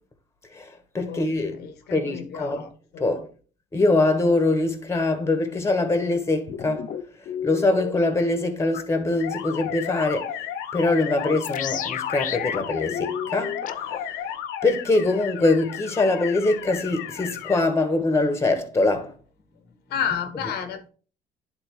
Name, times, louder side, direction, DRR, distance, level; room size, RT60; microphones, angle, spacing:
voice 1, 0.5-1.6 1.9-2.6 3.0-3.3 3.7-6.9 7.4-10.3 10.7-13.8 14.6-19.1, left 2 dB, 15° left, 1.2 m, -23 dB
voice 2, 1.6-3.2 19.9-20.9, left 7 dB, 70° left, 0.9 m, -31 dB
sound 1, 6.5-7.9 8.7-8.8 11.1-14.0, left 8 dB, 50° left, 0.6 m, -32 dB
sound 2, 9.2-17.6, left 10 dB, 90° left, 0.6 m, -34 dB
10.5 x 3.8 x 3.1 m
cardioid pair, 110°, 17 cm